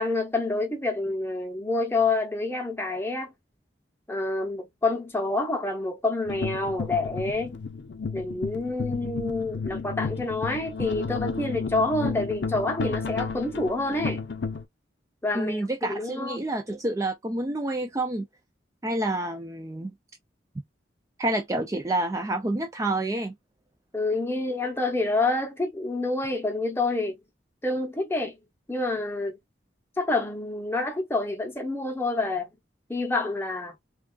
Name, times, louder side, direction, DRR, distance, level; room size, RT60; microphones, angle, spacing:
voice 1, 0.0-3.3 4.1-7.6 8.1-14.2 15.2-16.4 23.9-27.2 27.6-28.3 28.7-29.4 30.0-32.5 32.9-33.8, left 2 dB, 15° left, 0.7 m, -28 dB
sound 1, 6.3-14.7, left 4 dB, 80° left, 0.5 m, -32 dB
voice 2, 15.3-18.3 18.8-19.9 21.2-23.3, right 1 dB, 20° right, 0.3 m, -28 dB
3.4 x 2.3 x 2.2 m
head